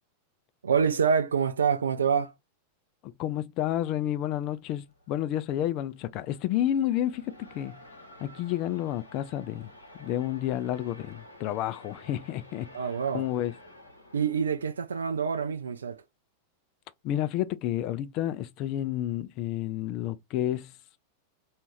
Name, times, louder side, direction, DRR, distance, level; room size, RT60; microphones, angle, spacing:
voice 1, 0.6-2.3 12.7-13.3 14.1-16.0, right 6 dB, 70° right, 0.4 m, -26 dB
voice 2, 3.0-7.8 8.2-9.7 10.0-12.7 13.1-13.5 17.0-20.8, left 12 dB, 40° left, 0.3 m, -30 dB
sound 1, 4.5-14.6, left 1 dB, 85° left, 0.9 m, -52 dB
2.5 x 2.4 x 3.2 m
figure-of-eight pair, 90°, 0 cm